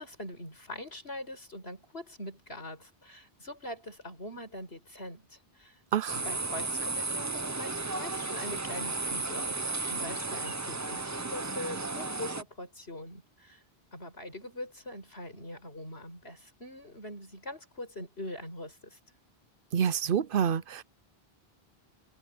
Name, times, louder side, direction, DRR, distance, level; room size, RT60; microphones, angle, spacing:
voice 1, 0.0-5.8 6.1-13.6 13.9-19.0, left 1 dB, 85° left, 7.2 m, -43 dB
sound 1, 6.1-12.4, right 3 dB, 20° right, 0.6 m, -34 dB
voice 2, 19.7-20.8, right 8 dB, 65° right, 0.8 m, -27 dB
omnidirectional pair, 1.0 m